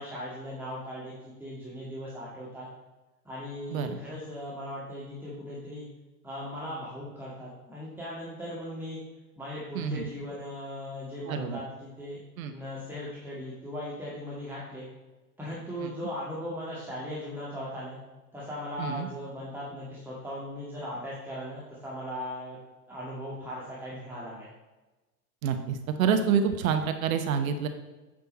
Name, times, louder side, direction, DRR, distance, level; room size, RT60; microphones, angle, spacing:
voice 1, 0.0-2.7 3.3-5.8 6.2-9.0 9.4-12.2 12.5-14.9 15.4-18.0 18.3-22.6 22.9-24.5, left 1 dB, 5° right, -8 dB, 1.9 m, -38 dB
voice 2, 9.7-10.1 11.3-11.6 12.4-12.5 15.8-15.9 18.8-19.1 25.4-27.7, right 7 dB, 60° right, 8 dB, 0.9 m, -27 dB
8.7 x 5.5 x 4.1 m, 1.1 s
figure-of-eight pair, 90°, 47 cm